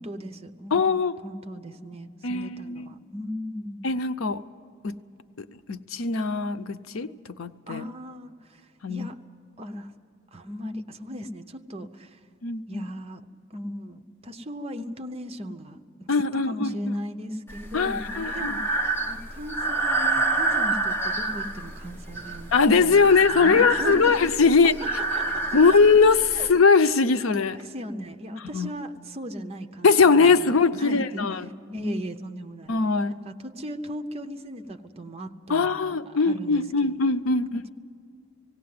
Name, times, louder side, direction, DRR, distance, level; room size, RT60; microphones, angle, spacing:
voice 1, 0.0-3.9 7.7-9.2 9.6-9.9 10.3-12.2 12.7-13.2 13.5-22.5 22.8-25.5 26.3-26.5 27.6-31.3 31.7-32.7 33.2-37.1 37.4-37.5, equal, 30° right, 7 dB, 0.8 m, -37 dB
voice 2, 0.7-1.1 2.2-2.9 3.8-4.4 4.8-4.9 5.7-7.1 7.4-7.8 8.8-9.1 12.4-12.9 16.1-16.7 17.7-18.5 22.5-24.7 25.5-27.6 28.5-28.7 29.8-31.4 32.7-33.2 35.5-37.6, left 4 dB, 90° left, 12 dB, 0.6 m, -21 dB
Breathing, 17.5-26.5, right 2 dB, 10° left, 1.2 m, -28 dB
18.5 x 17.0 x 9.5 m, 2.4 s
head